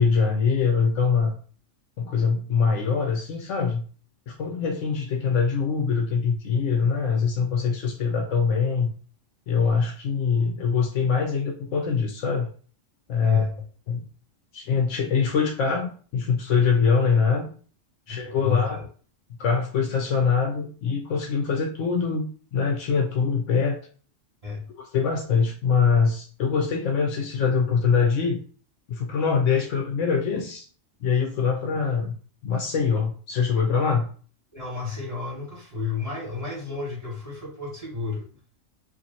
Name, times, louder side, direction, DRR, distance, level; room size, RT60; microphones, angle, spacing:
voice 1, 0.0-1.3 2.0-3.9 4.3-8.9 9.5-12.5 13.1-13.5 13.9-14.0 14.5-17.5 18.1-18.8 19.4-22.3 22.5-23.8 24.7-28.4 28.9-30.7 31.0-32.2 32.4-34.1, left 5 dB, 75° left, 2 dB, 1.0 m, -23 dB
voice 2, 13.2-13.6 18.1-18.8 24.4-24.6 34.5-38.2, left 5 dB, 25° right, -7 dB, 1.7 m, -32 dB
2.9 x 2.7 x 3.9 m, 0.41 s
omnidirectional pair, 1.3 m